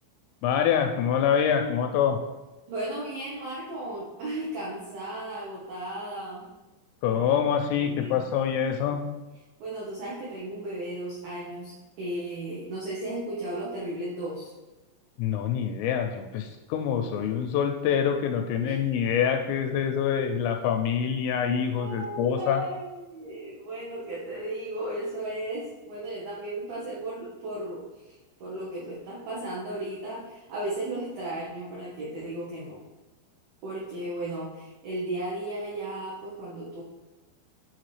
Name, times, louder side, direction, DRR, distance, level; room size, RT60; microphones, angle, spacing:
voice 1, 0.4-2.2 7.0-9.0 15.2-22.6, left 8 dB, 85° left, 5 dB, 2.9 m, -25 dB
voice 2, 2.7-6.4 7.1-7.4 7.8-8.9 9.6-14.5 18.6-18.8 21.8-28.2 28.4-32.8 33.6-36.8, right 1 dB, 80° right, -6 dB, 2.1 m, -35 dB
8.9 x 4.3 x 3.2 m, 1.1 s
omnidirectional pair, 6.0 m